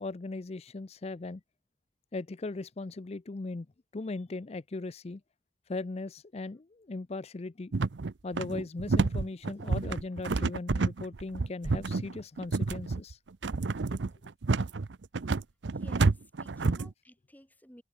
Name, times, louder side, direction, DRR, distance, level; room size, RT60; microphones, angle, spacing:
voice 1, 0.0-1.4 2.1-3.7 3.9-5.2 5.7-7.7 8.2-13.2 13.9-14.0, left 3 dB, 35° left, 0.5 m, -38 dB
sound 1, 7.7-16.9, right 3 dB, 75° right, 0.6 m, -29 dB
voice 2, 15.7-17.8, equal, 10° left, 3.6 m, -55 dB
head